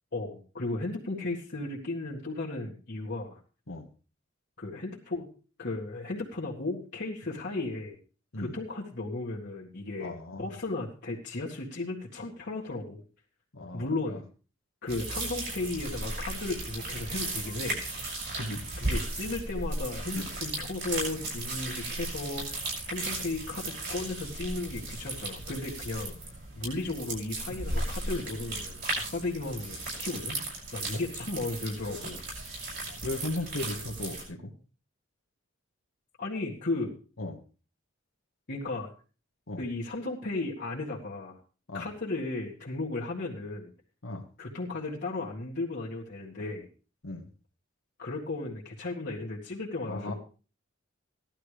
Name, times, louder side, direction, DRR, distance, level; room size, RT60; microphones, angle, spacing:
voice 1, 0.1-3.4 4.6-5.3 5.6-8.0 8.4-13.0 13.7-14.2 14.8-17.8 18.8-26.1 26.6-30.4 30.7-32.2 36.2-37.0 38.5-38.9 39.6-41.4 41.7-43.7 44.4-46.7 48.0-50.1, left 2 dB, 55° left, -4 dB, 1.9 m, -35 dB
voice 2, 10.0-10.4 13.5-14.2 18.4-18.6 20.1-20.3 30.9-31.0 33.0-34.5 37.2-37.4 39.5-39.6 41.7-41.8 44.0-44.3 47.0-47.2 49.9-50.1, left 2 dB, 80° left, 3 dB, 1.6 m, -36 dB
sound 1, 14.9-34.2, right 2 dB, 60° right, 6.4 m, -36 dB
16.5 x 12.0 x 3.3 m, 0.36 s
head